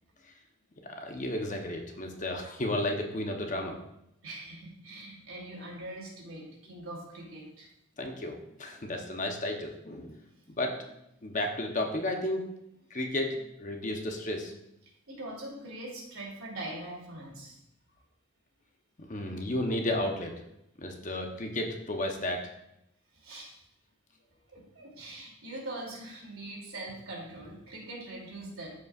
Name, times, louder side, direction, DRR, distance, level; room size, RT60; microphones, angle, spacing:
voice 1, 0.8-3.8 8.0-10.2 10.6-10.8 11.2-12.4 12.9-14.6 19.1-20.4 20.8-22.5, left 1 dB, 35° left, 3 dB, 0.8 m, -33 dB
voice 2, 4.2-7.7 8.7-8.9 15.1-17.6 23.1-23.6 24.5-28.7, right 1 dB, 80° right, -3 dB, 2.8 m, -42 dB
13.5 x 5.4 x 2.4 m, 0.81 s
head